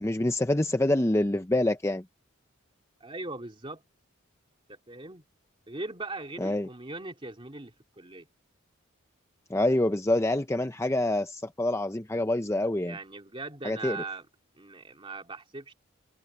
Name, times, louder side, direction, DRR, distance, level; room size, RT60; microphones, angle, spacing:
voice 1, 0.0-2.0 6.4-6.7 9.5-13.0 13.6-14.0, left 1 dB, 15° left, 0.6 m, -26 dB
voice 2, 3.0-3.8 4.7-5.2 5.7-8.3 12.8-14.3 14.6-15.7, right 2 dB, 25° right, 2.6 m, -40 dB
head